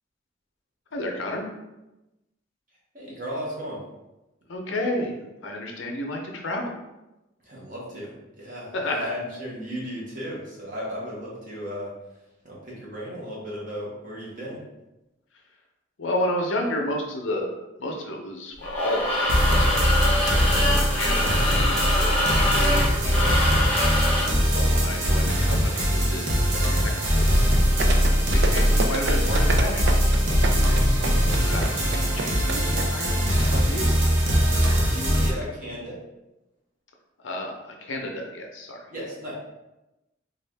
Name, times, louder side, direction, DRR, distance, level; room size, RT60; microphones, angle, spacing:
voice 1, 0.9-1.5 4.5-5.1 5.4-6.7 8.7-9.0 16.0-17.5 17.8-23.4 24.0-26.2 26.6-29.8 30.8-33.9 37.2-38.8, left 1 dB, 85° left, 1 dB, 0.7 m, -32 dB
voice 2, 2.9-3.8 7.4-11.9 12.4-14.6 34.8-36.0 38.9-39.3, equal, 45° right, -5 dB, 1.1 m, -35 dB
sound 1, 18.6-24.4, left 1 dB, 10° left, 0.8 m, -25 dB
sound 2, 19.3-35.3, equal, 90° right, 0.8 m, -21 dB
sound 3, 27.8-32.8 33.1-33.2, right 3 dB, 60° right, 0.4 m, -28 dB
3.5 x 2.4 x 3.3 m, 0.97 s
head